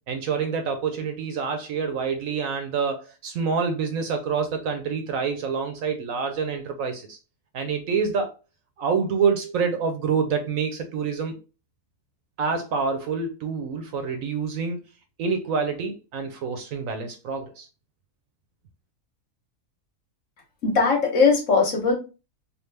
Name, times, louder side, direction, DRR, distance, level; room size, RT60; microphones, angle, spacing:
voice 1, 0.1-7.2 7.5-8.3 8.8-11.4 12.4-14.8 15.2-17.7, right 5 dB, 70° right, 0.9 m, -27 dB
voice 2, 20.6-21.9, left 4 dB, 55° left, 1.2 m, -19 dB
3.5 x 2.4 x 3.2 m
omnidirectional pair, 1.7 m